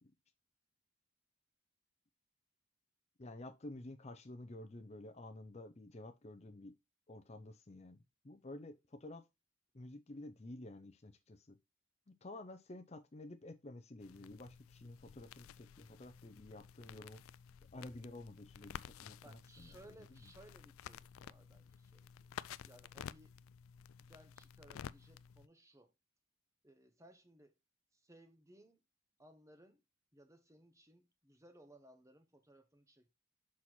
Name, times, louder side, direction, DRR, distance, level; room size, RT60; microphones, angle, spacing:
voice 1, 3.2-6.7 7.1-8.0 8.2-9.2 9.7-11.6 12.1-17.2 17.7-19.7, left 2 dB, 30° left, 0.6 m, -51 dB
sound 1, 14.0-25.5, left 8 dB, 90° left, 0.3 m, -53 dB
voice 2, 19.2-23.3 24.0-25.9 26.6-27.6 27.9-28.8 29.2-29.8 30.1-33.1, right 1 dB, 15° right, 0.9 m, -62 dB
6.3 x 4.2 x 4.3 m
head